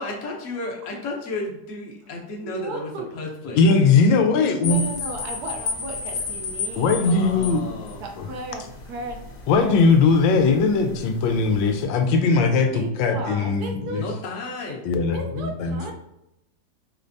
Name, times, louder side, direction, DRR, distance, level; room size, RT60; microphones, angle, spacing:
voice 1, 0.0-3.7 7.0-8.0 14.0-14.9, left 2 dB, 50° left, 1.1 m, -33 dB
voice 2, 2.4-3.1 4.6-7.1 8.0-9.8 10.8-10.9 12.6-14.0 15.1-15.9, right 2 dB, 65° right, 1.1 m, -35 dB
voice 3, 3.5-4.8 6.8-7.7 8.2-8.3 9.5-14.0 14.8-15.9, left 4 dB, 85° left, 1.3 m, -19 dB
sound 1, 4.6-11.8, left 5 dB, 65° left, 1.3 m, -34 dB
5.1 x 3.2 x 2.6 m
omnidirectional pair, 2.0 m